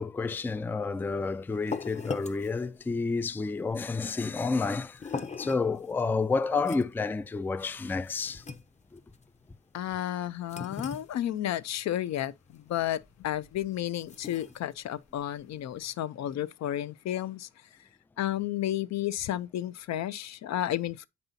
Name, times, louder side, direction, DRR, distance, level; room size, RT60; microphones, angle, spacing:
voice 1, 0.0-8.4 8.9-9.0, left 4 dB, 5° left, 0.3 m, -30 dB
sound 1, 0.9-15.9, left 4 dB, 25° left, 0.7 m, -43 dB
voice 2, 9.7-17.5 18.2-21.1, left 12 dB, 60° left, 0.6 m, -32 dB
8.0 x 5.4 x 2.7 m
cardioid pair, 90°, 30 cm